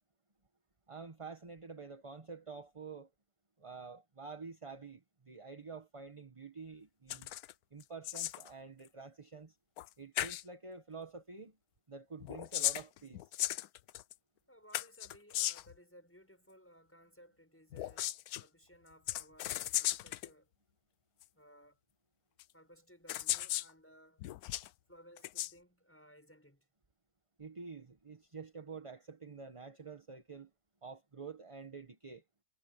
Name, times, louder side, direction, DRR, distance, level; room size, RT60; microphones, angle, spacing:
voice 1, 0.9-3.1 3.6-7.3 7.7-9.6 10.0-11.6 11.9-13.4 27.4-30.5 30.8-32.2, right 4 dB, 25° right, 1.2 m, -48 dB
sound 1, 7.1-7.5 7.8-8.5 9.8-9.9 10.2-10.4 12.2-14.1 14.7-15.8 17.7-18.4 19.1-20.3 21.2-21.3 22.4-22.5 23.1-23.7 24.2-24.7 25.2-25.5, left 14 dB, 85° left, 1.1 m, -36 dB
voice 2, 14.5-20.5 21.3-21.8 22.5-24.3 24.9-26.7, equal, 10° left, 6.9 m, -60 dB
omnidirectional pair, 1.6 m